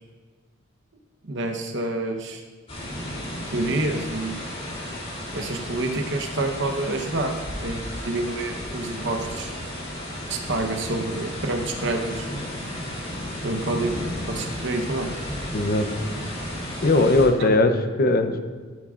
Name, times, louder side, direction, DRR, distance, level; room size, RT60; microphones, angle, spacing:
voice 1, 1.2-2.4 3.5-4.5 5.3-7.4 7.6-9.5 10.3-12.3 13.4-15.1 17.4-17.5, right 2 dB, 60° right, 4 dB, 1.0 m, -28 dB
sound 1, 2.7-17.3, equal, 30° left, 3.1 m, -33 dB
voice 2, 15.5-16.0 16.8-18.4, left 2 dB, 50° left, 8 dB, 0.7 m, -19 dB
14.0 x 9.5 x 2.5 m, 1.4 s
head